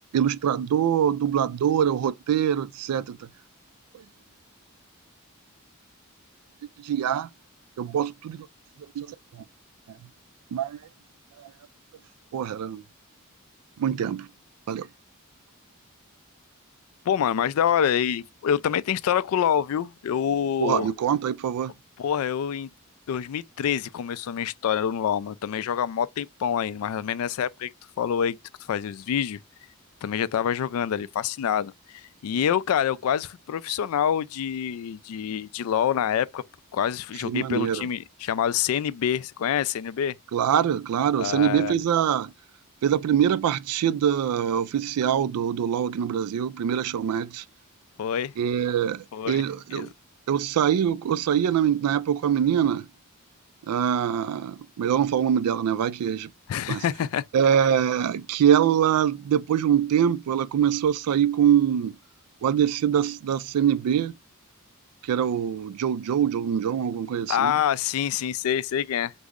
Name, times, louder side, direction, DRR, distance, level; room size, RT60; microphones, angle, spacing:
voice 1, 0.1-3.2 6.8-7.3 7.8-8.5 9.0-9.1 9.3-9.4 10.5-10.8 11.4-11.5 12.3-12.8 13.8-14.3 14.7-14.9 20.6-21.7 37.2-37.9 40.3-42.3 42.8-47.4 48.4-49.9 50.3-52.9 53.7-56.3 56.7-56.8 57.3-62.0 62.4-64.1 65.0-67.5, right 9 dB, 85° right, 0.3 m, -24 dB
voice 2, 17.1-20.9 22.0-22.7 23.1-27.7 28.0-28.4 28.7-29.4 30.0-31.7 32.2-36.4 36.7-40.1 41.2-41.7 48.0-48.3 49.1-49.4 49.7-49.9 56.5-57.2 67.3-69.1, left 8 dB, 70° left, 0.3 m, -26 dB
3.7 x 2.0 x 3.5 m
head